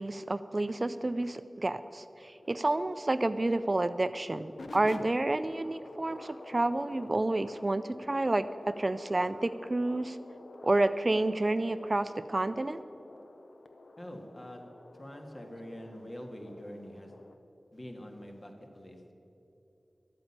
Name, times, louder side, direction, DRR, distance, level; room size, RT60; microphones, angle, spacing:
voice 1, 0.0-10.2 10.6-12.8, right 2 dB, 40° right, 12 dB, 0.4 m, -30 dB
sound 1, 2.4-17.4, left 2 dB, 90° left, 0.7 m, -50 dB
voice 2, 14.0-14.6 14.9-17.1 17.7-19.1, equal, 40° left, 2 dB, 1.8 m, -45 dB
12.0 x 8.9 x 8.7 m, 2.8 s
wide cardioid pair, 70°, 0 cm